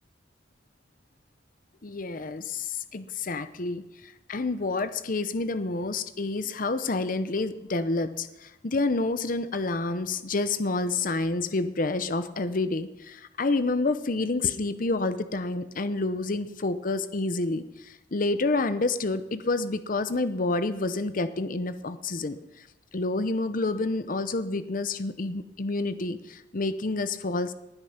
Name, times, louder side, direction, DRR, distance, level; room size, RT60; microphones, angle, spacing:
voice 1, 1.8-22.7 22.9-27.5, left 3 dB, 45° left, 12 dB, 0.7 m, -29 dB
19.5 x 9.7 x 5.8 m, 0.94 s
head